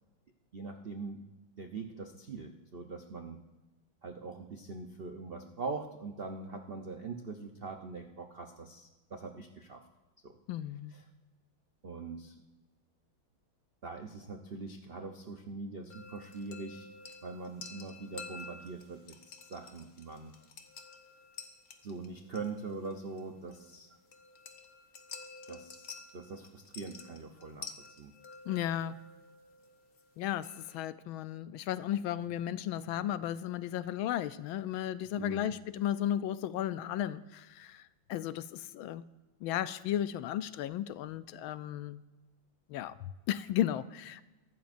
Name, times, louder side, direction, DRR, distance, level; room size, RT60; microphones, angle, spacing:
voice 1, 0.5-1.2 1.6-3.4 4.0-9.8 10.2-10.3 10.9-11.0 11.8-12.3 13.8-16.9 17.2-20.3 21.8-23.9 25.5-27.7 28.0-28.1 35.2-35.5, right 4 dB, 65° right, 4 dB, 0.5 m, -42 dB
voice 2, 10.5-10.9 28.5-29.0 30.2-39.0 39.4-42.0 42.7-44.3, left 11 dB, 80° left, 14 dB, 1.3 m, -35 dB
sound 1, 15.9-30.8, left 4 dB, 50° left, 1.4 m, -51 dB
23.5 x 12.5 x 2.6 m, 1.1 s
omnidirectional pair, 2.3 m